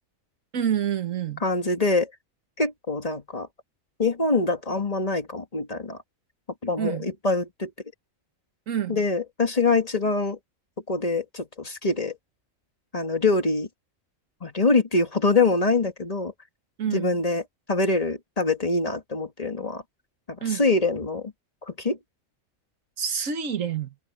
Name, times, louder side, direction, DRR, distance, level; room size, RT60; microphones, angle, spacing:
voice 1, 0.5-1.4 6.8-7.1 8.7-9.0 16.8-17.2 20.4-20.6 23.0-23.9, right 8 dB, 70° right, 1.6 m, -28 dB
voice 2, 1.4-2.1 2.6-3.5 4.0-6.0 6.6-7.7 8.9-10.4 10.9-12.1 12.9-13.7 14.4-16.3 16.9-17.4 17.7-19.8 20.3-21.3 21.7-22.0, left 3 dB, 30° left, 1.9 m, -24 dB
omnidirectional pair, 1.4 m